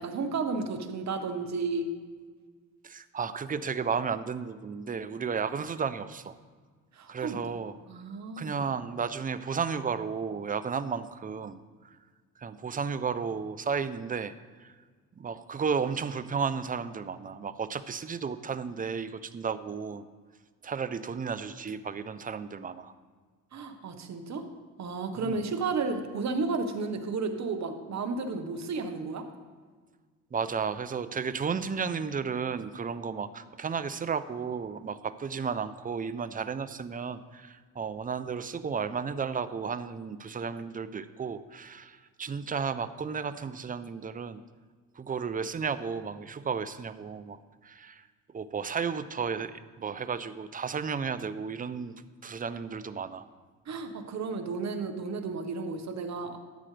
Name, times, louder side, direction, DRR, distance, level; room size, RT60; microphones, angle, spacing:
voice 1, 0.0-1.9 7.0-7.4 7.9-8.6 23.5-24.5 24.8-29.2 53.7-56.4, right 4 dB, 50° right, 6 dB, 1.3 m, -32 dB
voice 2, 2.8-6.4 7.1-7.7 8.4-12.0 12.4-14.3 14.6-14.7 15.2-20.1 20.6-22.9 25.2-25.4 30.3-44.4 45.0-47.4 47.6-48.0 48.3-53.3, right 6 dB, 25° right, 12 dB, 0.6 m, -33 dB
13.0 x 9.0 x 3.3 m, 1.5 s
cardioid pair, 90°, 34 cm